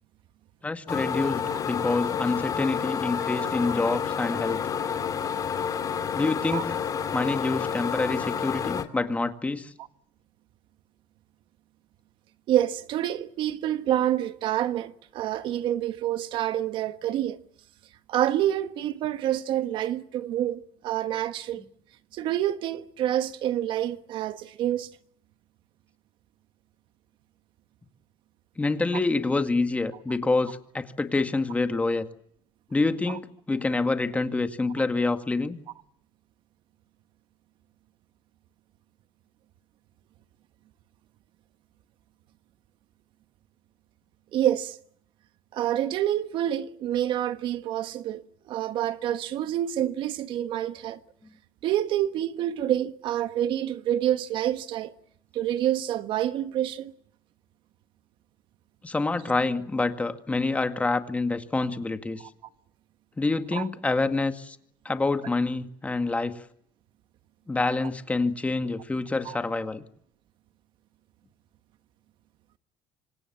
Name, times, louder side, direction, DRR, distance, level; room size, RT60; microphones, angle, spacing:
voice 1, 0.6-4.6 6.1-6.8 7.1-9.7 28.6-32.1 32.7-35.6 58.8-62.2 63.2-64.6 64.9-66.4 67.5-69.8, left 3 dB, 15° left, 2.0 m, -27 dB
sound 1, 0.9-8.8, left 7 dB, 40° left, 2.7 m, -29 dB
voice 2, 3.4-3.7 6.5-6.6 12.5-17.4 18.1-21.6 22.1-24.9 33.1-33.2 44.3-44.8 45.5-51.0 51.6-54.9 55.3-56.9 63.5-63.7 69.2-69.4, right 12 dB, 65° right, 1.4 m, -27 dB
26.5 x 26.0 x 7.4 m
cardioid pair, 110°, 9 cm